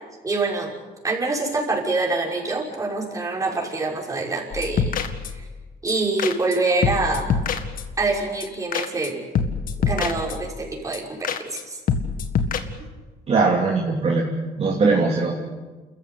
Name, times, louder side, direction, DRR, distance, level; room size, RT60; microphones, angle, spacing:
voice 1, 0.2-0.7 1.0-5.0 5.3-5.5 5.8-7.3 8.0-9.2 9.8-11.8, right 3 dB, 20° right, -2 dB, 6.0 m, -25 dB
sound 1, 4.5-5.5 5.9-6.0 6.2-6.6 6.8-8.0 8.4-8.5 8.7-9.1 9.3-10.6 10.9-11.0 11.2-11.6 11.9-12.6, left 6 dB, 55° left, 1.8 m, -25 dB
voice 2, 13.3-14.3 14.6-15.3, right 4 dB, 35° right, -1 dB, 3.0 m, -20 dB
29.0 x 14.5 x 8.6 m, 1.3 s
cardioid pair, 110°, 17 cm